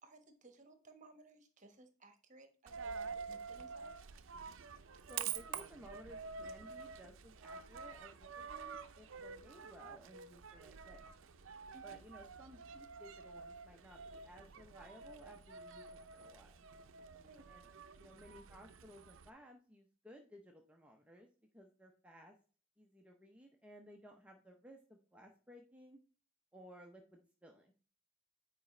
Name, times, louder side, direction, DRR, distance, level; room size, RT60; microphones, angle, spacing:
voice 1, 0.0-3.9 11.7-12.0 17.2-17.5, right 2 dB, 35° right, 7 dB, 1.1 m, -60 dB
Coin (dropping), 2.7-19.3, right 6 dB, 65° right, 0.6 m, -48 dB
voice 2, 5.0-11.0 11.8-16.6 17.5-17.7 18.0-21.3 21.5-22.4 22.8-26.0 26.5-27.7, equal, 5° right, 1 dB, 0.6 m, -58 dB
9.7 x 4.9 x 3.2 m, 0.40 s
head